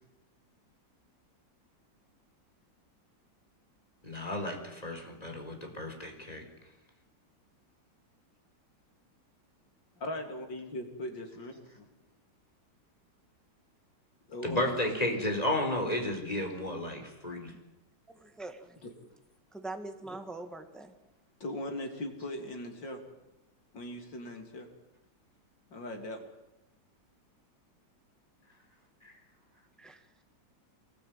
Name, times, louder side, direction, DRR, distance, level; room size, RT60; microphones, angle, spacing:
voice 1, 4.0-6.4 14.4-17.5 29.0-29.1, left 1 dB, 20° left, 2 dB, 4.5 m, -33 dB
voice 2, 10.0-11.5 11.8-11.9 14.3-14.7 18.8-18.9 21.4-23.0 23.7-24.7 25.7-26.3, left 1 dB, 80° left, 4 dB, 3.9 m, -39 dB
voice 3, 18.1-18.8 19.5-20.9 29.8-30.0, right 2 dB, ahead, 6 dB, 1.7 m, -42 dB
23.5 x 20.0 x 9.2 m, 0.95 s
omnidirectional pair, 2.0 m